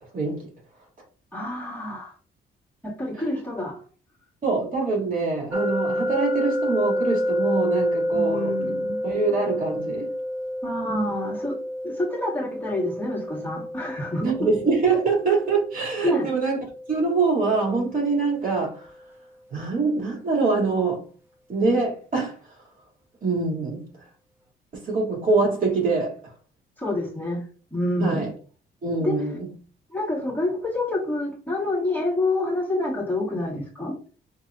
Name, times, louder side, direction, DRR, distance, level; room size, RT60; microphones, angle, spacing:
voice 1, 0.1-0.5 4.4-8.5 9.0-10.1 14.2-16.6 16.9-18.9 19.5-21.0 21.5-22.5 23.2-23.9 24.7-26.2 28.0-28.3 28.8-29.5, right 4 dB, 45° right, 2.5 m, -24 dB
voice 2, 1.3-2.1 2.8-3.8 8.1-9.0 10.6-11.6 11.8-14.5 16.0-16.3 26.8-27.4 27.7-28.3 29.0-29.1 29.9-34.0, left 1 dB, 10° left, 2.2 m, -27 dB
sound 1, 5.5-18.4, left 1 dB, 10° right, 0.9 m, -29 dB
5.9 x 3.3 x 2.5 m
cardioid pair, 90°, 20 cm